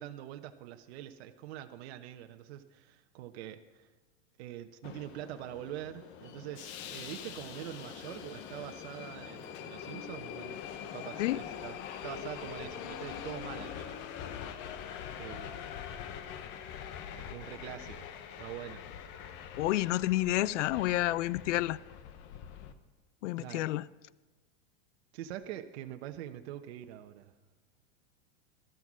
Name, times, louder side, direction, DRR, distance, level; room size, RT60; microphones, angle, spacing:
voice 1, 0.0-3.9 4.4-10.6 10.9-13.9 15.2-15.7 17.3-18.1 18.4-18.9 23.4-23.7 25.1-27.3, right 12 dB, 60° right, 1.1 m, -44 dB
Subway metro underground, 4.8-22.7, left 8 dB, 30° left, 0.9 m, -44 dB
voice 2, 19.6-21.8 23.2-23.8, left 16 dB, 80° left, 0.6 m, -29 dB
18.0 x 13.0 x 6.2 m
supercardioid pair, 165°, 36 cm